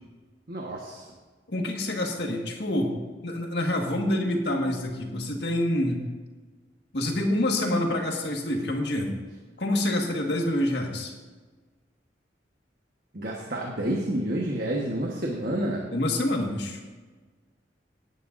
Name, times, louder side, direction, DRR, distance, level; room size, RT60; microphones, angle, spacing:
voice 1, 0.5-1.0 13.1-15.8, right 1 dB, 55° right, -1 dB, 1.3 m, -29 dB
voice 2, 1.5-2.9 3.2-6.0 6.9-9.2 9.6-11.1 15.9-16.8, left 1 dB, 65° left, 1 dB, 1.7 m, -27 dB
17.5 x 10.0 x 2.6 m, 1.3 s
head